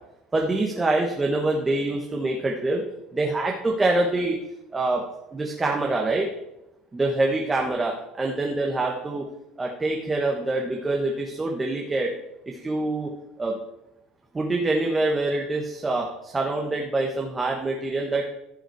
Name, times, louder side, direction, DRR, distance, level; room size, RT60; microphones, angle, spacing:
voice 1, 0.3-2.8 3.1-4.4 4.7-5.0 5.3-6.3 6.9-9.3 9.6-12.1 12.5-13.1 13.4-13.6 14.3-18.3, right 2 dB, 15° right, 1 dB, 1.2 m, -25 dB
14.5 x 5.7 x 4.7 m, 0.88 s
cardioid pair, 140°, 0 cm